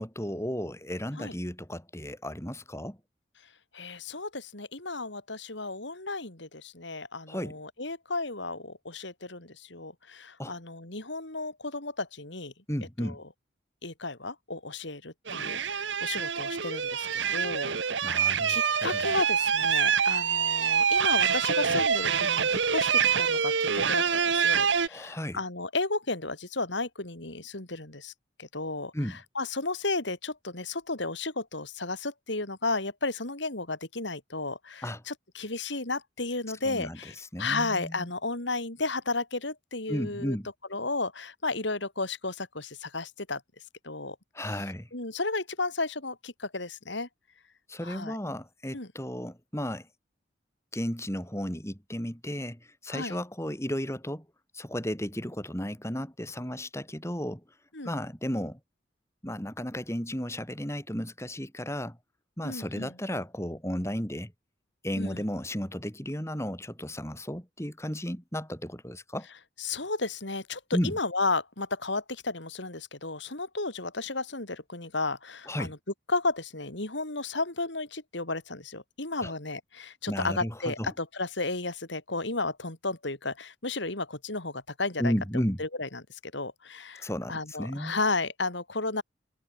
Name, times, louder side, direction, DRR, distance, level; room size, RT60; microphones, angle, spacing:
voice 1, 0.0-3.0 7.3-7.6 10.4-10.5 12.7-13.2 18.0-19.0 24.9-25.4 28.9-29.2 34.8-35.0 36.6-37.0 37.3-38.1 39.9-40.5 44.3-44.9 47.7-49.9 50.7-54.3 54.5-57.4 57.8-58.6 59.2-62.0 62.4-64.3 64.8-69.3 70.7-70.9 75.5-75.7 79.2-79.3 80.1-80.9 85.0-85.6 87.0-88.0, equal, 15° left, 7.3 m, -34 dB
voice 2, 3.7-12.5 13.0-13.2 13.8-28.1 28.4-40.4 40.7-43.4 43.8-44.2 44.9-47.1 47.8-48.2 48.7-48.9 52.9-53.2 57.7-57.9 62.4-62.9 65.0-65.2 69.6-75.8 76.1-85.1 85.6-89.0, left 3 dB, 70° left, 3.7 m, -33 dB
sound 1, 15.3-24.9, right 7 dB, 70° right, 1.1 m, -26 dB
head